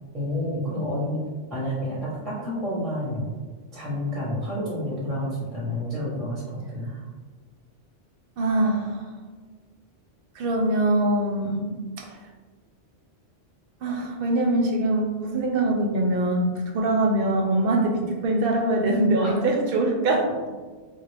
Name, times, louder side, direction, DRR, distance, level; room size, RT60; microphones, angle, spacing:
voice 1, 0.1-1.2 1.5-3.3 3.7-6.9 19.2-19.4, left 1 dB, ahead, -6 dB, 0.7 m, -29 dB
voice 2, 8.4-9.0 10.4-12.1 13.8-20.2, right 1 dB, 60° right, 1 dB, 0.7 m, -23 dB
3.9 x 2.2 x 3.2 m, 1.4 s
omnidirectional pair, 1.2 m